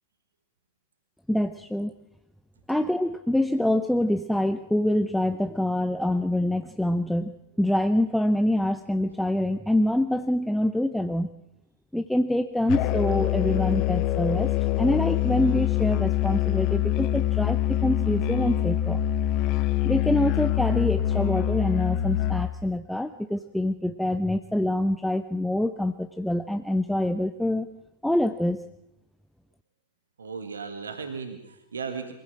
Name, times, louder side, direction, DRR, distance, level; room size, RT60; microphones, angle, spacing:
voice 1, 1.3-1.9 2.7-7.3 7.6-11.3 11.9-19.0 19.8-27.7 28.0-28.6, left 1 dB, ahead, 9 dB, 0.6 m, -25 dB
Musical instrument, 12.7-22.6, left 13 dB, 40° left, 0.9 m, -25 dB
voice 2, 30.2-32.1, right 5 dB, 70° right, 6 dB, 1.8 m, -36 dB
23.0 x 15.5 x 7.4 m, 0.89 s
figure-of-eight pair, 90°, 0 cm